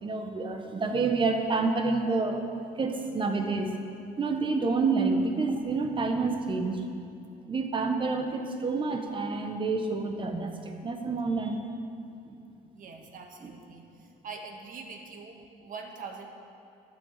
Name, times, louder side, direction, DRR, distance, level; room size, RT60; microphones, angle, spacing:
voice 1, 0.0-2.4 2.8-3.7 4.2-6.8 7.5-11.6 12.3-12.4 13.4-13.5, right 3 dB, 30° right, 5 dB, 1.3 m, -28 dB
voice 2, 12.7-16.3, right 4 dB, 55° right, 3 dB, 1.5 m, -43 dB
11.0 x 7.8 x 7.4 m, 2.5 s
cardioid pair, 110°, 17 cm